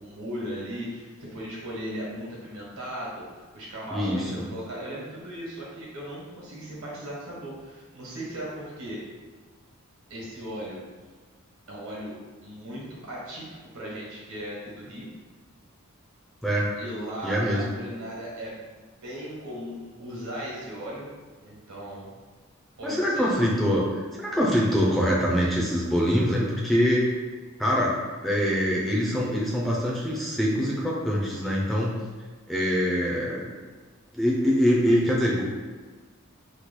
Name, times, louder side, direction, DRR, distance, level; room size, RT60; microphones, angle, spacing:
voice 1, 0.0-9.0 10.1-10.8 11.7-15.1 16.8-21.1 21.4-22.1 22.8-23.4, equal, 90° right, -5 dB, 1.1 m, -37 dB
voice 2, 3.9-4.4 16.4-16.7 17.2-17.6 22.8-27.1 27.6-27.9 28.2-31.9 32.5-33.5 34.1-35.4, equal, ahead, -5 dB, 0.4 m, -24 dB
3.0 x 2.2 x 3.7 m, 1.4 s
head